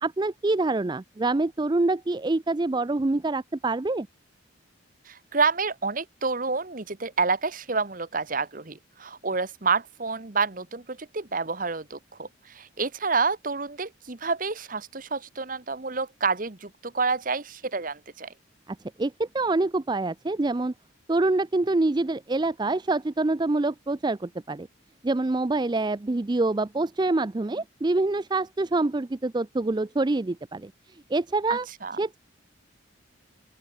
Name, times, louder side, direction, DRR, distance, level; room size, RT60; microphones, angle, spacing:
voice 1, 0.0-4.1 19.0-20.7 21.1-24.7 25.0-30.7 31.1-31.7 32.0-32.2, right 2 dB, 20° right, 0.4 m, -26 dB
voice 2, 5.1-18.3 31.5-32.0, right 4 dB, 40° right, 1.1 m, -29 dB
open air
head